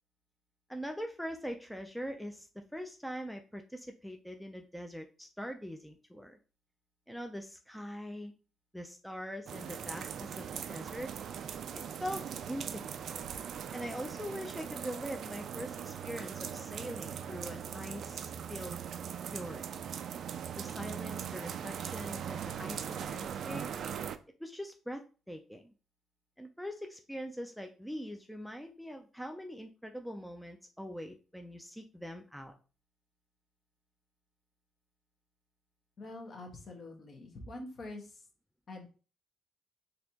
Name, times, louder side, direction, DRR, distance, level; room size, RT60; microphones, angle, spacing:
voice 1, 0.7-6.4 7.1-8.3 8.7-11.1 11.7-13.0 13.7-18.8 19.3-19.6 20.6-23.7 24.4-25.7 26.4-32.5, equal, ahead, 4 dB, 0.4 m, -42 dB
sound 1, 9.5-24.2, right 8 dB, 65° right, 0.3 m, -40 dB
voice 2, 36.0-38.3 38.7-38.9, left 2 dB, 50° left, 2 dB, 1.2 m, -45 dB
4.1 x 2.8 x 2.8 m, 0.35 s
cardioid pair, 90°, 0 cm